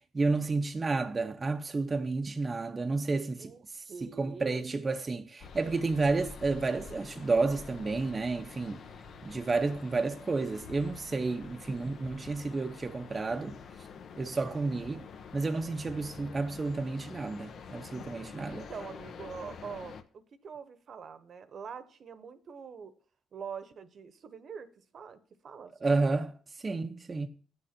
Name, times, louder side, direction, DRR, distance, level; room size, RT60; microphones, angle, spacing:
voice 1, 0.1-3.8 4.2-8.8 9.2-13.6 14.2-15.1 15.3-18.7 25.8-27.3, right 3 dB, 30° right, 0.6 m, -31 dB
voice 2, 3.4-4.7 18.5-19.9 20.4-22.9 23.3-24.7 24.9-26.2, right 6 dB, 55° right, 1.0 m, -44 dB
sound 1, 5.4-20.0, left 6 dB, 65° left, 0.9 m, -47 dB
8.9 x 6.6 x 5.9 m
cardioid pair, 90°, 0 cm